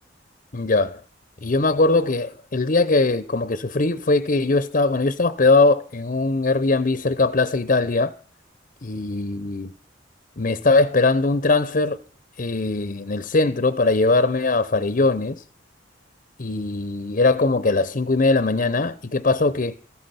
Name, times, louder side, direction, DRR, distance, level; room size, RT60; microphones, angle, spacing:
voice 1, 0.5-1.0 1.4-8.1 8.8-9.7 10.4-12.0 12.4-15.4 16.4-19.8, left 3 dB, 45° left, 0.8 m, -20 dB
14.5 x 13.0 x 5.8 m
head